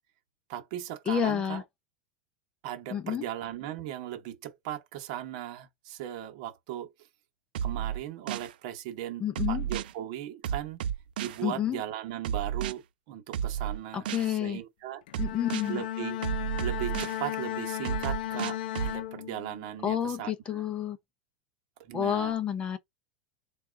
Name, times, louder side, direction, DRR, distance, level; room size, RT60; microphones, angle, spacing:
voice 1, 0.5-1.6 2.6-6.9 7.6-10.8 11.2-12.8 13.1-15.0 15.7-16.2 16.6-20.6 21.8-22.3, right 12 dB, 45° right, 1.0 m, -38 dB
voice 2, 1.1-1.6 2.9-3.3 9.2-9.6 11.4-11.8 13.9-14.6 15.2-15.8 19.8-21.0 21.9-22.8, left 9 dB, 20° left, 0.5 m, -29 dB
sound 1, 7.5-8.5 9.3-9.9 10.4-11.4 12.2-12.7 13.3-14.3 15.1-15.7 16.2-17.2 17.8-19.0, right 9 dB, 90° right, 0.4 m, -32 dB
Bowed string instrument, 15.1-19.7, left 13 dB, 80° left, 0.4 m, -35 dB
4.2 x 2.4 x 3.6 m
supercardioid pair, 170°, 5 cm